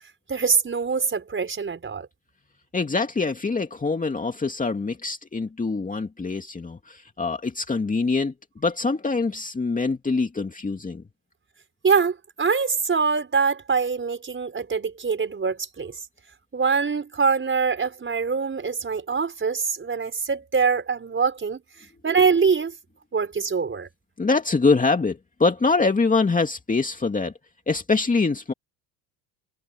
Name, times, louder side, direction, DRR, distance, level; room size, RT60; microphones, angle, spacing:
voice 1, 0.3-2.1 11.8-16.0 16.5-21.6 22.0-22.7 23.1-23.9, right 5 dB, 25° right, 5.1 m, -24 dB
voice 2, 2.7-11.0 24.2-27.3 27.7-28.5, left 4 dB, 15° left, 2.4 m, -24 dB
supercardioid pair, 100°, 45 cm